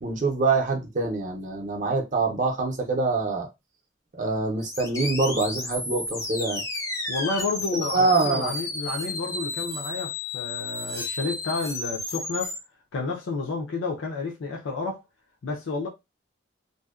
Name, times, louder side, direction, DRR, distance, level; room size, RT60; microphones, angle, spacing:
voice 1, 0.0-3.5 4.1-6.6 7.7-8.5, right 3 dB, 40° right, 0.5 m, -25 dB
sound 1, 4.6-12.6, left 2 dB, 15° left, 0.3 m, -32 dB
voice 2, 7.1-12.5 12.9-15.0 15.4-15.9, left 3 dB, 80° left, 0.5 m, -30 dB
2.6 x 2.0 x 2.3 m
head